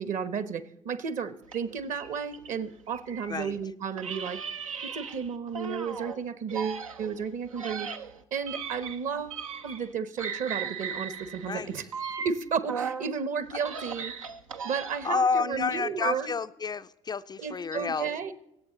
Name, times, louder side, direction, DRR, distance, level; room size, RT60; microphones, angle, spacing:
voice 1, 0.0-4.4 4.8-7.9 8.3-11.8 12.2-14.1 14.6-16.3 17.4-18.3, right 6 dB, 50° right, 14 dB, 1.0 m, -33 dB
sound 1, 1.5-3.6 4.0-6.2 6.5-9.9 10.2-13.1 13.5-15.2, right 6 dB, 90° right, 0.5 m, -37 dB
voice 2, 15.0-18.1, left 5 dB, 25° left, 10 dB, 0.4 m, -30 dB
23.0 x 8.2 x 3.9 m, 0.85 s
hypercardioid pair, 55°, 17 cm